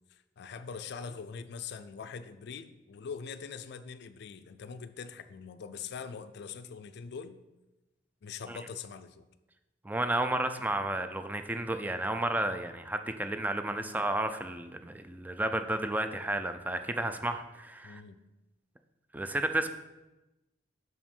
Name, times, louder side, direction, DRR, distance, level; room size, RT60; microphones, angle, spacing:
voice 1, 0.1-7.4 8.2-9.3 13.8-14.1 17.8-18.2, left 6 dB, 65° left, 10 dB, 0.4 m, -43 dB
voice 2, 9.8-18.0 19.1-19.7, right 1 dB, 10° right, 8 dB, 0.4 m, -32 dB
6.0 x 5.0 x 5.4 m, 1.0 s
head